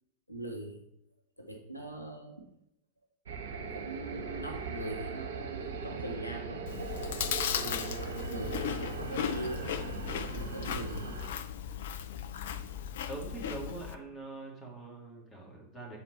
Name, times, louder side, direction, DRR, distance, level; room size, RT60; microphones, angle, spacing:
voice 1, 0.3-0.8 1.4-2.5 3.6-6.7 7.5-9.6 10.3-11.3 12.5-12.6, equal, 85° left, 3 dB, 0.9 m, -41 dB
sound 1, 3.3-11.3, right 5 dB, 65° right, 0.9 m, -39 dB
Chewing mastication, 6.7-14.0, left 9 dB, 55° left, 0.5 m, -37 dB
voice 2, 13.1-16.0, right 2 dB, 15° left, -1 dB, 2.4 m, -43 dB
7.8 x 4.4 x 4.1 m, 0.79 s
figure-of-eight pair, 90°, 0 cm